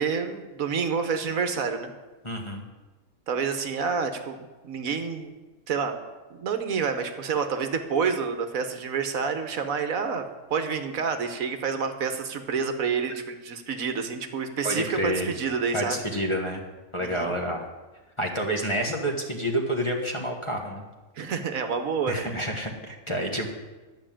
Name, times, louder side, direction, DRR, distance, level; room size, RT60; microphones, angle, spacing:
voice 1, 0.0-1.9 3.3-4.4 4.6-5.3 5.7-6.0 6.3-16.0 17.0-17.3 21.2-22.3, right 5 dB, 70° right, 8 dB, 1.4 m, -28 dB
voice 2, 2.2-2.6 14.6-15.3 15.7-16.6 16.9-17.7 18.2-20.8 22.1-23.5, equal, 20° left, 1 dB, 1.3 m, -28 dB
11.5 x 6.0 x 8.7 m, 1.2 s
omnidirectional pair, 1.5 m